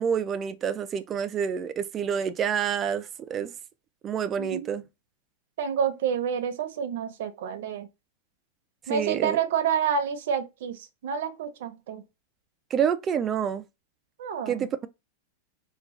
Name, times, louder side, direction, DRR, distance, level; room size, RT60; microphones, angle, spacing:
voice 1, 0.0-3.5 4.0-4.9 8.9-9.4 12.7-13.7 14.5-14.9, right 8 dB, 20° right, 0.3 m, -28 dB
voice 2, 4.4-4.7 5.6-7.9 8.9-12.0 14.2-14.7, right 7 dB, 70° right, 0.6 m, -29 dB
3.6 x 2.3 x 3.0 m
supercardioid pair, 155°, 0 cm